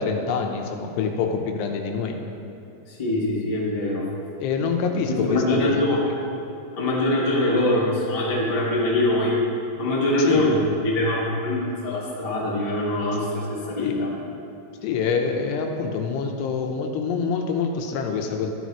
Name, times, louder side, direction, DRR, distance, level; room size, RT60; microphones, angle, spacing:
voice 1, 0.0-2.2 4.4-5.8 10.2-10.5 13.8-14.0 14.8-18.5, left 5 dB, 90° left, 3 dB, 3.0 m, -26 dB
voice 2, 2.9-4.1 5.1-6.1 6.7-9.4 9.7-14.1, left 1 dB, 25° left, -6 dB, 0.7 m, -23 dB
13.5 x 12.5 x 3.1 m, 2.8 s
omnidirectional pair, 4.8 m